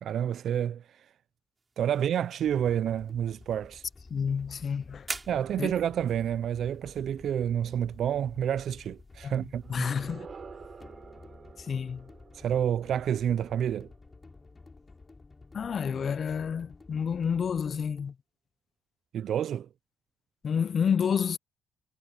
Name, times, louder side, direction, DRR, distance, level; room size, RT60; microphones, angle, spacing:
voice 1, 0.0-0.8 1.8-3.8 5.3-9.6 12.3-13.9 19.1-19.7, right 9 dB, 65° right, 0.4 m, -29 dB
sound 1, 1.5-10.0, right 3 dB, 25° right, 4.2 m, -48 dB
sound 2, 2.4-18.1, left 3 dB, 25° left, 6.6 m, -52 dB
voice 2, 4.1-5.1 5.6-5.7 9.2-9.3 9.7-10.3 11.6-12.1 15.5-18.1 20.4-21.4, left 7 dB, 50° left, 0.4 m, -29 dB
sound 3, 9.6-14.5, right 6 dB, 45° right, 4.1 m, -49 dB
cardioid pair, 90°, 0 cm